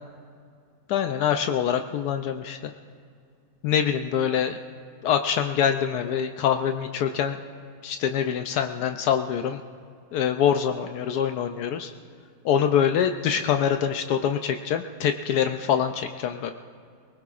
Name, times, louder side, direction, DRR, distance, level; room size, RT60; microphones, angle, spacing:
voice 1, 0.9-2.6 3.6-4.6 5.0-7.4 7.8-9.6 10.1-11.9 12.4-16.5, left 8 dB, 80° left, 6 dB, 1.1 m, -24 dB
22.0 x 20.0 x 2.4 m, 2.2 s
omnidirectional pair, 1.7 m